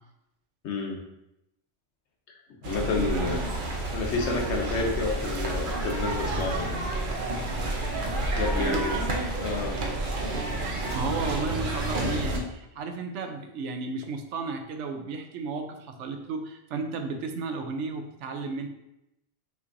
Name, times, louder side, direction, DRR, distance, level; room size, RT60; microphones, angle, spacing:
voice 1, 0.6-1.0 2.6-3.4 3.9-6.9 8.4-9.0 9.4-9.8, left 4 dB, 75° left, 2 dB, 1.1 m, -30 dB
sound 1, 2.6-12.4, right 2 dB, 50° right, 0.7 m, -30 dB
voice 2, 2.9-3.4 4.2-4.4 8.6-9.1 10.9-18.7, right 4 dB, 85° right, 5 dB, 0.9 m, -33 dB
5.7 x 3.1 x 2.5 m, 0.86 s
omnidirectional pair, 1.2 m